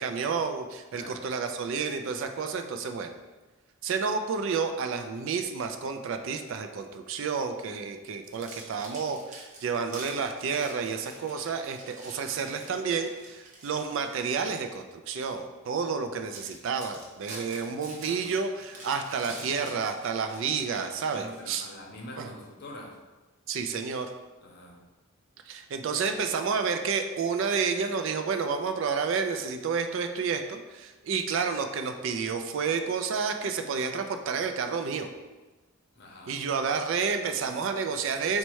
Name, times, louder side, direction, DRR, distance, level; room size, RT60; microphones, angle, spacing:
voice 1, 0.0-3.1 3.8-21.7 22.2-22.3 23.5-24.1 25.5-35.1 36.3-38.4, right 5 dB, 60° right, 6 dB, 0.3 m, -30 dB
sound 1, 8.2-14.7 15.2-15.4 15.9-16.0 16.3-21.8, right 2 dB, 35° right, 0.7 m, -47 dB
voice 2, 21.1-23.0 24.4-24.8 36.0-36.4, left 1 dB, 50° left, -1 dB, 0.7 m, -44 dB
4.1 x 2.2 x 4.5 m, 1.2 s
head